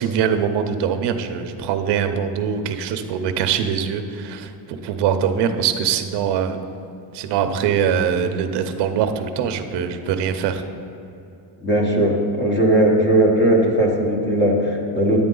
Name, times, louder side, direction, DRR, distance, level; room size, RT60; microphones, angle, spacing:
voice 1, 0.0-6.6 7.1-10.6, right 7 dB, 55° right, 7 dB, 0.8 m, -22 dB
voice 2, 11.6-15.2, right 1 dB, 20° left, 0 dB, 1.2 m, -18 dB
10.5 x 8.6 x 3.8 m, 2.8 s
cardioid pair, 155°, 49 cm